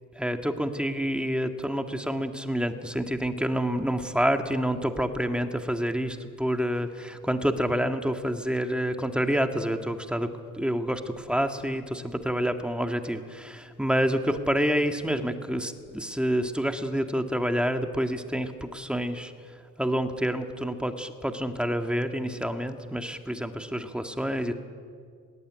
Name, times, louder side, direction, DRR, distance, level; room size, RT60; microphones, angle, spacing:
voice 1, 0.2-10.3 10.5-19.3 19.8-24.5, equal, 5° right, 6 dB, 1.8 m, -28 dB
18.5 x 18.0 x 9.9 m, 2.1 s
cardioid pair, 90°, 30 cm